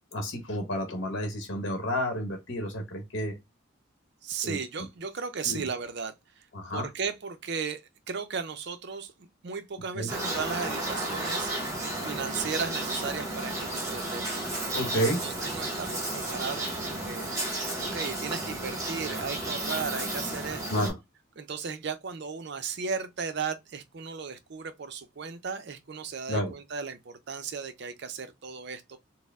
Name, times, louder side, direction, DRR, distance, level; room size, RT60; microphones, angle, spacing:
voice 1, 0.1-3.4 4.4-4.6 5.4-5.7 6.5-6.9 9.9-10.1 14.7-15.2 20.7-21.0 26.3-26.5, equal, 55° left, 1.0 m, -30 dB
voice 2, 4.2-6.5 6.7-14.4 15.1-17.3 17.8-20.9 21.4-29.0, right 5 dB, 50° right, 0.5 m, -36 dB
sound 1, 10.1-20.9, right 1 dB, 15° right, 1.1 m, -33 dB
4.2 x 2.1 x 3.5 m
head